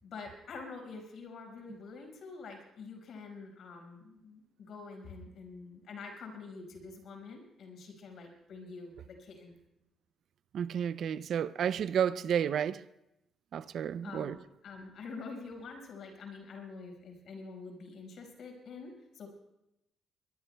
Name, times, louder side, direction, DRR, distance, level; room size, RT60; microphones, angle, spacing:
voice 1, 0.0-9.5 14.0-19.3, left 4 dB, 65° left, 5.2 m, -46 dB
voice 2, 10.5-12.8 13.5-14.4, right 8 dB, 65° right, 0.5 m, -31 dB
23.5 x 21.5 x 2.3 m
cardioid pair, 90°, 0 cm